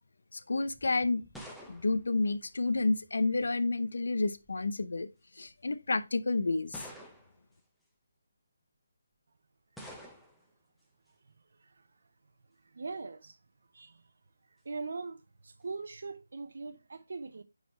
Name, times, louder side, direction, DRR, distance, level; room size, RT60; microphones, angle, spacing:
voice 1, 0.5-1.2 1.7-5.1 5.4-6.8, left 3 dB, 75° left, 0.8 m, -30 dB
sound 1, 0.7-3.1 4.1-4.6 5.4-5.5 6.7-7.5 9.8-10.5, equal, ahead, 0.7 m, -49 dB
voice 2, 12.7-13.4 13.7-14.0 14.6-17.4, right 4 dB, 60° right, 0.8 m, -41 dB
9.0 x 4.1 x 3.0 m
hypercardioid pair, 170°, 0 cm